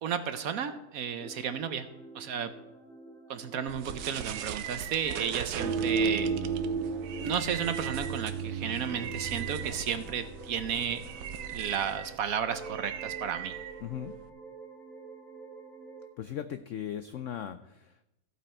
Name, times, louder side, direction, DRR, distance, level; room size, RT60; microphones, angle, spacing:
voice 1, 0.0-1.9 2.1-2.5 3.3-6.3 7.2-11.1 11.5-13.5, right 8 dB, 65° right, 10 dB, 1.0 m, -33 dB
sound 1, 1.2-8.4 8.8-12.2 12.5-16.1, right 3 dB, ahead, 1.5 m, -48 dB
sound 2, 3.7-14.3, right 9 dB, 85° right, 1.4 m, -40 dB
sound 3, 5.6-11.0, right 5 dB, 40° right, 2.1 m, -33 dB
voice 2, 13.8-14.1 16.2-18.0, left 10 dB, 80° left, 10 dB, 0.7 m, -38 dB
14.5 x 8.3 x 4.4 m, 0.93 s
omnidirectional pair, 1.8 m